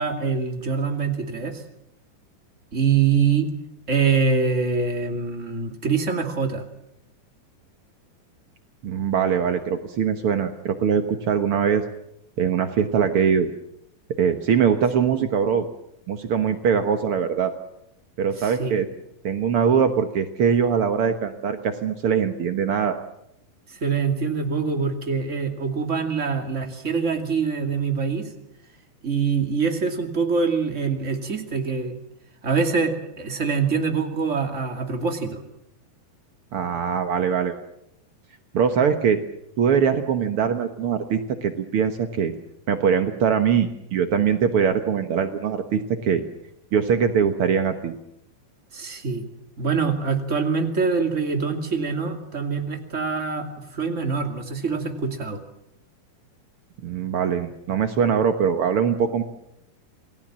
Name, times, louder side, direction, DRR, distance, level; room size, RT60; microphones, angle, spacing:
voice 1, 0.0-1.6 2.7-3.5 3.9-6.6 18.4-18.8 23.7-28.3 29.0-32.0 32.4-35.4 48.7-49.2 49.6-55.4, right 5 dB, 25° right, 5 dB, 2.2 m, -24 dB
voice 2, 8.8-11.8 12.4-13.5 14.2-15.6 16.1-17.5 18.2-18.9 19.2-23.0 36.5-37.6 38.5-39.2 39.6-42.3 42.7-46.2 46.7-47.9 56.8-59.2, right 7 dB, 75° right, 7 dB, 1.2 m, -22 dB
28.5 x 19.5 x 7.5 m, 0.80 s
omnidirectional pair, 4.4 m